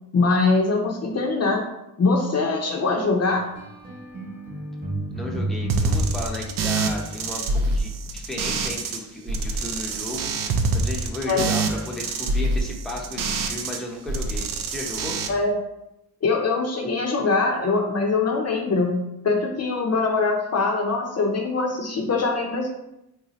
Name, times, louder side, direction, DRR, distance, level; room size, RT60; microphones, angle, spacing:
voice 1, 0.1-1.7 2.0-3.5 11.3-11.5 15.3-15.6 16.2-22.7, left 3 dB, 45° left, 1 dB, 0.6 m, -23 dB
sound 1, 3.3-7.3, equal, 25° right, 1.0 m, -33 dB
voice 2, 5.1-15.2, left 1 dB, ahead, -1 dB, 0.6 m, -34 dB
sound 2, 5.7-9.0 9.3-13.8 14.1-15.3, right 3 dB, 65° right, 0.5 m, -25 dB
2.7 x 2.4 x 4.0 m, 0.86 s
cardioid pair, 75°, 35 cm